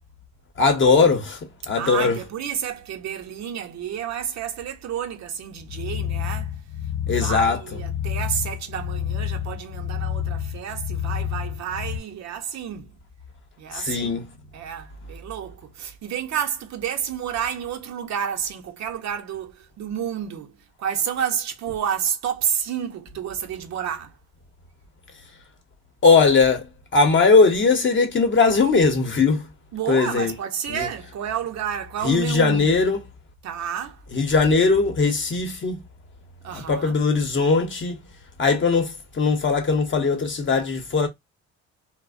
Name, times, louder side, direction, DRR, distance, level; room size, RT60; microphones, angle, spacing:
voice 1, 0.6-1.4 1.7-2.2 7.1-7.6 13.7-14.3 26.0-29.5 29.9-30.3 30.7-30.9 32.0-33.0 34.1-35.8 36.5-38.0 38.4-41.1, left 4 dB, 40° left, 0.8 m, -19 dB
voice 2, 1.8-6.6 7.1-12.9 13.6-14.2 14.5-24.1 29.7-32.7 33.4-34.0 36.4-37.0, right 8 dB, 65° right, 0.6 m, -30 dB
sound 1, 5.6-12.0, left 9 dB, 80° left, 0.5 m, -29 dB
2.5 x 2.0 x 2.4 m
cardioid pair, 90°, 30 cm